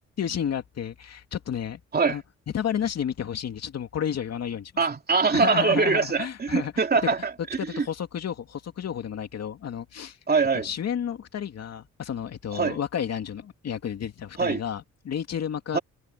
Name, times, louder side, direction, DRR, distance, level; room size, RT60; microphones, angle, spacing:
voice 1, 0.2-1.8 2.1-2.2 2.5-4.7 5.3-6.8 7.6-10.2 10.6-15.8, left 8 dB, 55° left, 2.6 m, -31 dB
voice 2, 4.8-7.9 10.3-10.7 12.5-12.8 14.4-14.6 15.7-15.8, right 4 dB, 30° right, 3.1 m, -23 dB
cardioid pair, 90°, 30 cm